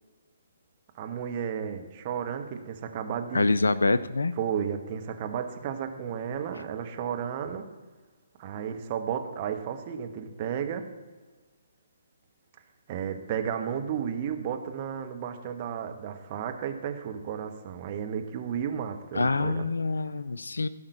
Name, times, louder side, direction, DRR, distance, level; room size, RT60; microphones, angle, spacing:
voice 1, 0.9-3.5 4.4-7.7 8.4-10.9 12.9-19.7, right 8 dB, 35° right, 5 dB, 1.2 m, -33 dB
voice 2, 3.3-4.3 19.1-20.7, left 3 dB, 70° left, 14 dB, 0.5 m, -25 dB
16.0 x 5.8 x 6.7 m, 1.3 s
figure-of-eight pair, 135°, 0 cm